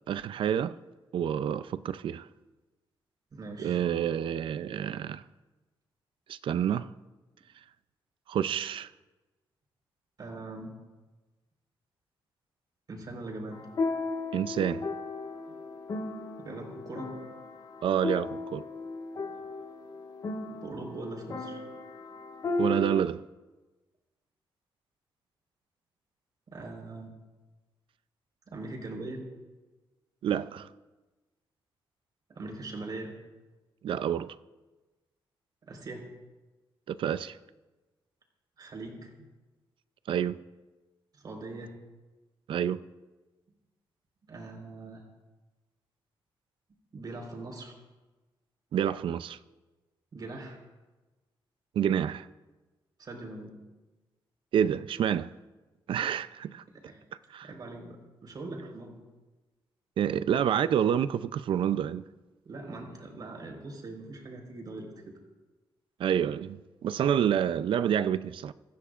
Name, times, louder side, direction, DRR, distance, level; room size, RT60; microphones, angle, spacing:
voice 1, 0.1-0.8 1.1-2.3 3.6-5.2 6.3-6.9 8.3-8.9 14.3-14.9 17.8-18.7 22.6-23.2 30.2-30.7 33.8-34.4 36.9-37.4 40.1-40.4 42.5-42.8 48.7-49.4 51.8-52.3 54.5-55.3 55.9-56.6 57.3-57.5 60.0-62.0 66.0-68.5, right 9 dB, 75° right, 0.5 m, -28 dB
voice 2, 3.3-3.8 10.2-10.7 12.9-13.7 15.5-15.6 16.4-17.1 20.6-21.6 26.5-27.1 28.5-29.3 32.3-33.1 35.6-36.0 38.6-39.3 41.1-41.7 44.3-45.0 46.9-47.7 50.1-50.6 53.0-53.5 56.7-57.0 57.4-59.0 62.4-65.1, right 2 dB, 50° right, 4.1 m, -41 dB
sound 1, 13.5-23.0, left 2 dB, 45° left, 1.6 m, -35 dB
24.5 x 14.5 x 2.5 m
wide cardioid pair, 130°, 9 cm